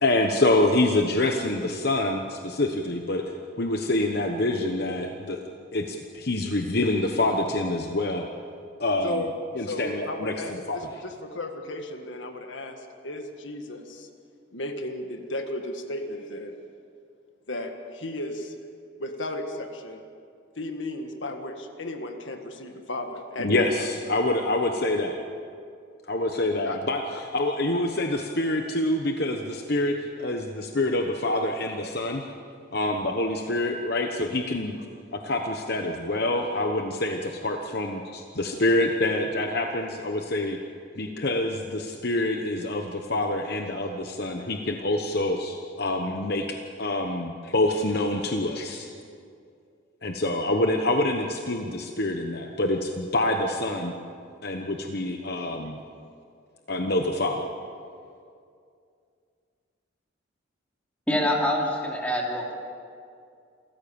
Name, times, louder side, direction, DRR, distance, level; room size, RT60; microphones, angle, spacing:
voice 1, 0.0-5.4 5.7-8.3 8.8-9.2 9.6-10.8 23.4-25.2 26.1-27.0 27.3-32.3 32.7-34.9 35.1-40.6 41.0-46.5 46.8-48.9 50.0-53.9 54.4-55.8 56.7-57.5, left 2 dB, 50° left, 4 dB, 1.1 m, -26 dB
voice 2, 9.0-14.1 14.5-16.6 17.5-18.5 19.0-20.0 20.5-23.7 26.6-26.8 27.1-27.2, left 2 dB, 70° left, 5 dB, 1.7 m, -34 dB
voice 3, 61.1-62.5, left 1 dB, 5° left, -2 dB, 2.8 m, -25 dB
28.0 x 14.5 x 7.1 m, 2.4 s
head